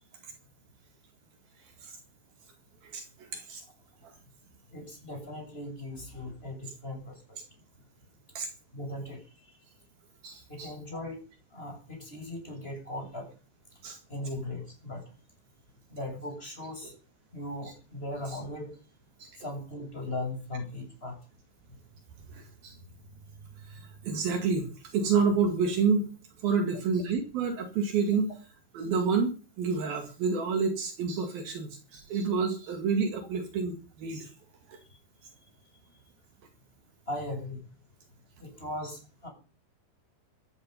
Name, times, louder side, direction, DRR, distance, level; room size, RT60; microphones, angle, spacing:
voice 1, 2.8-3.6 8.4-8.5 10.2-10.7 13.8-14.0 19.2-19.3 22.3-22.8 23.7-26.1 26.4-28.3 28.7-34.3 34.7-34.8, right 5 dB, 65° right, 6 dB, 3.7 m, -29 dB
voice 2, 4.7-7.4 8.7-9.6 10.5-11.2 11.5-13.3 14.1-15.0 15.9-16.9 17.3-18.7 19.4-21.2 34.9-35.0 37.1-37.7 38.4-39.3, left 1 dB, 15° left, 2 dB, 7.2 m, -38 dB
16.0 x 14.0 x 5.6 m, 0.36 s
omnidirectional pair, 4.7 m